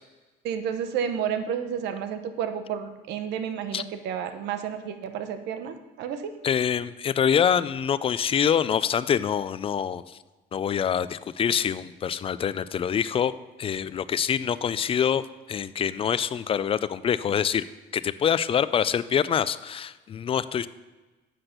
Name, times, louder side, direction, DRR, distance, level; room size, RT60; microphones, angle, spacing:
voice 1, 0.4-6.3, right 8 dB, 85° right, 8 dB, 0.9 m, -31 dB
voice 2, 6.4-10.2 10.5-13.3 13.6-17.7 17.9-20.7, left 8 dB, 35° left, 16 dB, 0.4 m, -25 dB
7.9 x 5.9 x 6.6 m, 1.2 s
cardioid pair, 110°, 17 cm